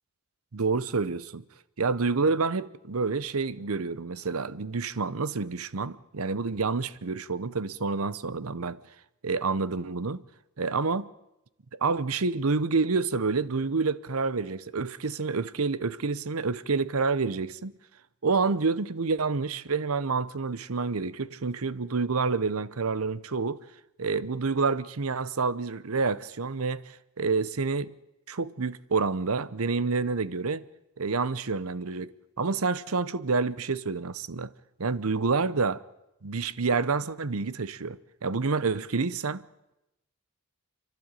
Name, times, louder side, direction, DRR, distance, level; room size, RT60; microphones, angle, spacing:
voice 1, 0.5-1.4 1.8-8.8 9.2-10.2 10.6-11.1 11.7-17.7 18.2-23.7 24.0-27.9 28.3-30.6 31.0-34.5 34.8-35.8 36.2-39.4, right 4 dB, 75° right, 0.8 m, -28 dB
30.0 x 12.0 x 9.0 m
head